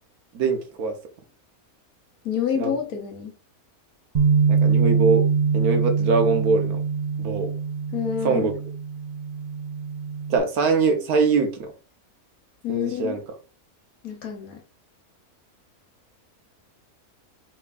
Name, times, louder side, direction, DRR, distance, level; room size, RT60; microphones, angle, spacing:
voice 1, 0.3-0.9 2.5-2.8 4.5-5.2 5.5-6.8 7.2-7.5 8.2-8.5 10.3-11.7 12.7-13.2, right 4 dB, 85° right, 1.4 m, -22 dB
voice 2, 2.2-3.3 7.9-8.5 12.6-13.2 14.0-14.6, left 8 dB, 75° left, 1.3 m, -28 dB
Bass guitar, 4.1-10.4, right 6 dB, 45° right, 0.6 m, -23 dB
4.3 x 4.0 x 2.4 m
omnidirectional pair, 1.6 m